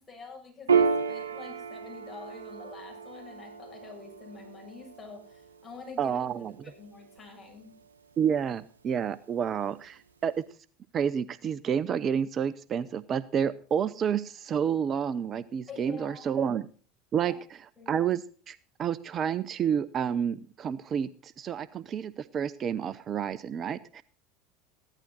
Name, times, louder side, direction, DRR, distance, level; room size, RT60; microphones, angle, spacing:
voice 1, 0.0-6.2 6.6-7.8 15.7-16.5 17.3-17.4 17.8-18.1, left 4 dB, 20° left, 1 dB, 7.6 m, -47 dB
Piano, 0.7-7.6, right 6 dB, 85° right, 0.9 m, -32 dB
voice 2, 6.0-6.5 8.2-10.4 10.9-16.7 17.1-17.3 17.9-24.0, right 8 dB, 40° right, 16 dB, 0.6 m, -29 dB
15.5 x 11.5 x 4.2 m, 0.39 s
hypercardioid pair, 75°, 0 cm